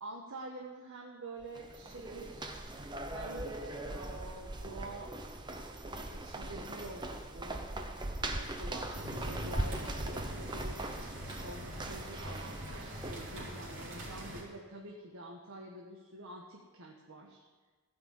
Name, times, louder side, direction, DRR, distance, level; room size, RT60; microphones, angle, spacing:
voice 1, 0.0-2.6 3.1-5.2 5.8-7.9 8.2-17.4, right 2 dB, 80° right, 0 dB, 1.4 m, -47 dB
sound 1, 1.4-13.5, right 1 dB, 20° right, 0.8 m, -40 dB
sound 2, 8.9-14.4, equal, 55° right, 3.8 m, -44 dB
16.0 x 6.0 x 8.2 m, 1.3 s
head